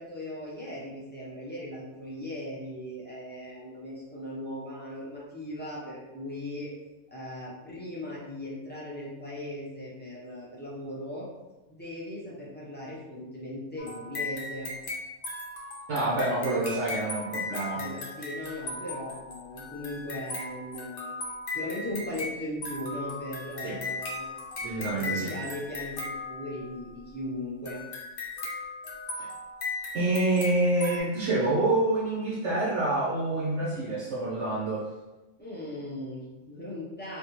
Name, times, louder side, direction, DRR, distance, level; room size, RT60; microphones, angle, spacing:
voice 1, 0.0-6.7 7.1-11.3 11.7-14.7 17.7-21.1 21.5-24.3 24.8-27.8 35.4-37.2, left 1 dB, 15° left, -7 dB, 0.4 m, -38 dB
sound 1, 13.8-26.9 27.7-31.0, left 2 dB, 55° left, 0.7 m, -37 dB
voice 2, 15.9-17.8 23.6-23.8 24.6-25.3 29.9-34.9, right 2 dB, 60° right, -7 dB, 1.1 m, -27 dB
3.5 x 2.3 x 2.9 m, 1.1 s
omnidirectional pair, 1.5 m